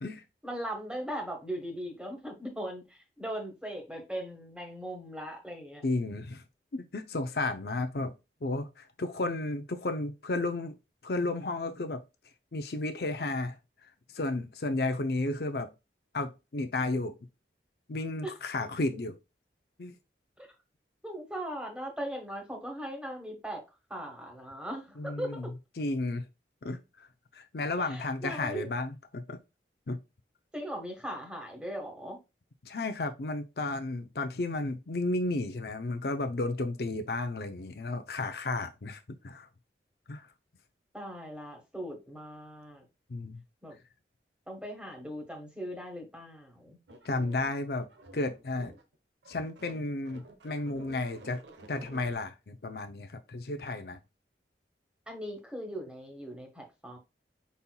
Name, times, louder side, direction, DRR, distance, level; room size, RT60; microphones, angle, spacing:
voice 1, 0.4-5.8 18.2-18.3 20.4-20.5 21.0-23.6 23.9-25.4 27.8-28.7 30.5-32.2 40.9-42.8 43.6-43.8 44.5-46.8 55.1-57.0, equal, 5° right, 1.4 m, -39 dB
voice 2, 5.8-6.4 6.7-8.1 8.4-10.8 11.0-12.0 12.5-13.6 14.1-15.7 16.1-17.1 17.9-19.1 19.8-19.9 25.0-25.5 25.8-26.2 26.6-27.1 27.3-29.4 29.9-30.0 32.6-39.5 40.1-40.3 43.1-43.4 47.0-47.9 48.1-48.7 49.3-51.4 51.7-54.0, left 2 dB, 60° left, 0.6 m, -33 dB
sound 1, 46.9-48.9 49.2-52.1, right 1 dB, 90° right, 1.0 m, -51 dB
5.4 x 4.2 x 2.3 m
head